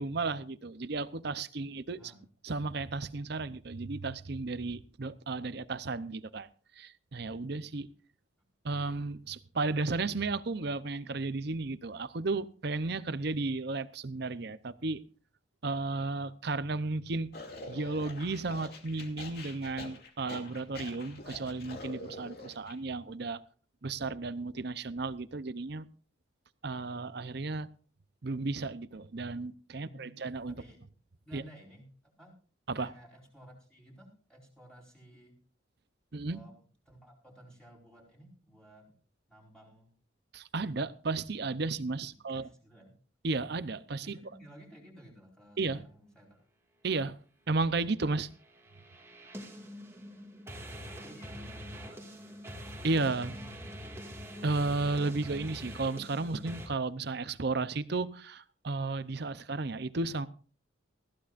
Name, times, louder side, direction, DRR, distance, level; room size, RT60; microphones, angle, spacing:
voice 1, 0.0-2.1 2.4-6.5 6.8-7.9 8.6-15.0 15.6-17.3 17.7-23.4 23.8-25.9 26.6-27.7 28.2-30.6 31.3-31.4 32.7-32.9 36.1-36.4 40.3-42.5 43.2-44.2 45.6-45.8 46.8-47.2 47.5-48.3 52.8-53.4 54.4-60.3, right 3 dB, 55° right, 0.7 m, -33 dB
sound 1, 17.3-22.7, left 2 dB, 50° left, 2.6 m, -45 dB
voice 2, 29.7-30.2 30.5-30.9 31.2-32.4 32.8-35.4 36.3-38.9 39.3-39.9 42.0-43.0 44.0-46.4 50.7-54.2, right 1 dB, 5° left, 4.4 m, -56 dB
sound 2, 48.3-56.7, equal, 15° right, 2.0 m, -44 dB
20.0 x 15.0 x 2.5 m
head